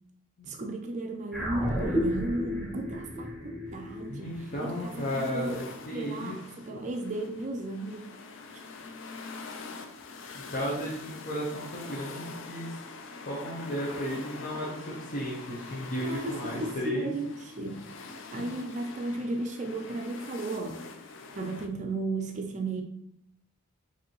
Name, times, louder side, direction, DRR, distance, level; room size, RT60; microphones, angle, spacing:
voice 1, 0.4-5.6 5.9-8.1 16.0-17.8 18.3-20.8 21.3-22.8, right 2 dB, 35° right, 4 dB, 0.4 m, -35 dB
sound 1, 1.3-5.9, equal, ahead, 1.0 m, -33 dB
sound 2, 3.7-21.7, left 4 dB, 65° left, 0.4 m, -45 dB
voice 2, 4.1-6.3 6.7-6.9 10.5-12.8 13.3-17.1, equal, 40° left, -5 dB, 0.7 m, -34 dB
5.1 x 2.7 x 3.0 m, 0.76 s
head